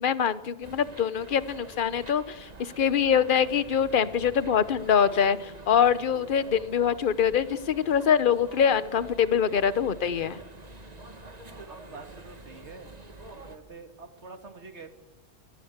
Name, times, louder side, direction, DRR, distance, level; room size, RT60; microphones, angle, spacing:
voice 1, 0.0-10.4, left 8 dB, 50° left, 15 dB, 1.1 m, -24 dB
sound 1, 0.6-13.6, right 2 dB, 35° right, 1.9 m, -47 dB
voice 2, 11.5-13.0 13.4-14.9, right 4 dB, 75° right, 6 dB, 2.5 m, -46 dB
26.5 x 19.0 x 8.1 m, 1.0 s
omnidirectional pair, 1.2 m